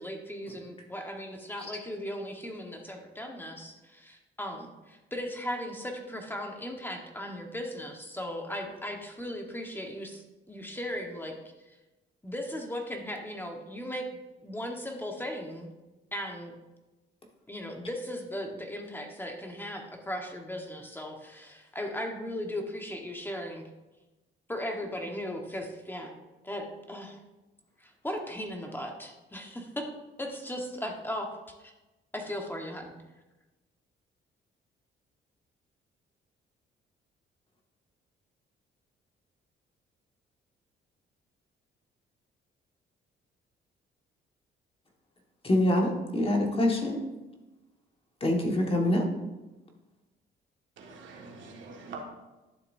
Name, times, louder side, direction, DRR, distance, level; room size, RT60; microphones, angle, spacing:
voice 1, 0.0-10.2 10.5-11.3 12.2-14.0 14.4-15.7 16.1-16.5 17.5-23.6 24.5-26.2 26.4-27.2 27.8-29.9 30.2-31.3 31.6-31.7 32.1-33.0, equal, 10° left, 2 dB, 1.3 m, -37 dB
voice 2, 45.4-47.0 48.2-49.0, left 1 dB, 30° left, 1 dB, 1.6 m, -25 dB
voice 3, 50.8-52.0, right 4 dB, 70° right, 0 dB, 1.8 m, -44 dB
11.5 x 7.0 x 2.7 m, 1.1 s
cardioid pair, 90°, 20 cm